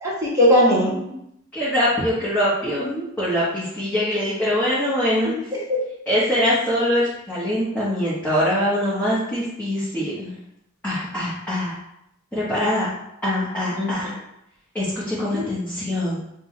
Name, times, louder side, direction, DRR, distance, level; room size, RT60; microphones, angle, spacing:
voice 1, 0.0-0.9 5.2-5.8 13.7-14.1 15.2-15.4, equal, 15° right, -7 dB, 1.1 m, -20 dB
voice 2, 1.5-5.3 6.1-10.3 10.8-11.7 12.3-12.9 13.2-14.1 14.7-16.2, equal, 10° left, -11 dB, 0.9 m, -23 dB
5.3 x 2.2 x 3.1 m, 0.81 s
head